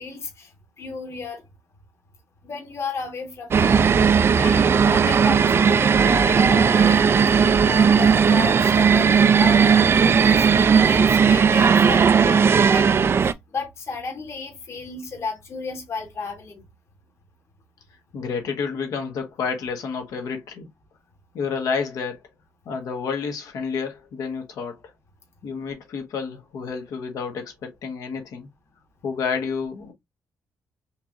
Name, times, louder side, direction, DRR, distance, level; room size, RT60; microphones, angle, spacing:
voice 1, 0.0-1.4 2.4-16.6, left 4 dB, 50° left, 1.5 m, -34 dB
sound 1, 3.5-13.3, right 6 dB, 40° right, 0.4 m, -17 dB
voice 2, 18.1-20.7 21.3-22.2 22.6-24.9 25.4-28.5 29.0-29.9, left 5 dB, 75° left, 1.3 m, -30 dB
4.4 x 3.0 x 2.4 m
cardioid pair, 95°, 6 cm